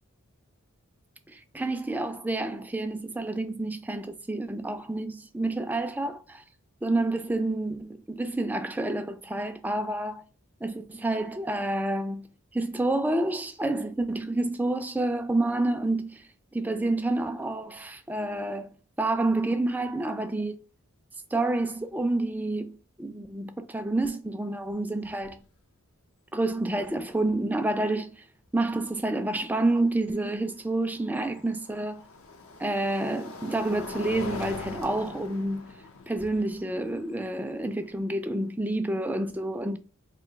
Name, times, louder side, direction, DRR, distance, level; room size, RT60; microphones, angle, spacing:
voice 1, 1.3-6.4 6.8-10.2 10.6-12.3 12.5-18.7 19.0-20.6 21.3-25.4 26.3-28.2 28.5-32.1 32.6-35.7 36.1-39.8, right 2 dB, 10° right, 0.3 m, -29 dB
sound 1, 24.6-24.7 25.0-25.5 27.3-27.4 30.4-38.5, left 3 dB, 65° left, 0.6 m, -42 dB
3.0 x 2.8 x 4.4 m
head